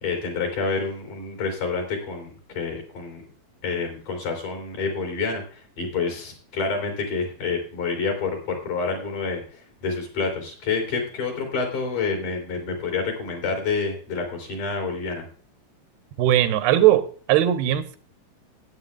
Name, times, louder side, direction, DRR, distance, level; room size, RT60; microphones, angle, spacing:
voice 1, 0.0-3.2 3.6-15.2, left 4 dB, 55° left, 2 dB, 4.8 m, -28 dB
voice 2, 16.2-18.0, right 12 dB, 90° right, 10 dB, 2.8 m, -19 dB
17.5 x 9.0 x 2.4 m, 0.42 s
omnidirectional pair, 4.5 m